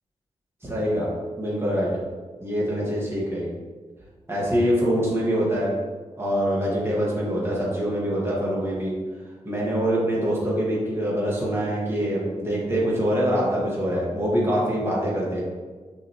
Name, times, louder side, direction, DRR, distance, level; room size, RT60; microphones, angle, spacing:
voice 1, 0.6-1.1 1.4-1.9 2.4-3.5 4.3-5.7 6.2-8.9 9.4-15.4, equal, 20° right, -6 dB, 1.8 m, -24 dB
6.3 x 5.6 x 3.1 m, 1.4 s
wide cardioid pair, 150°, 13 cm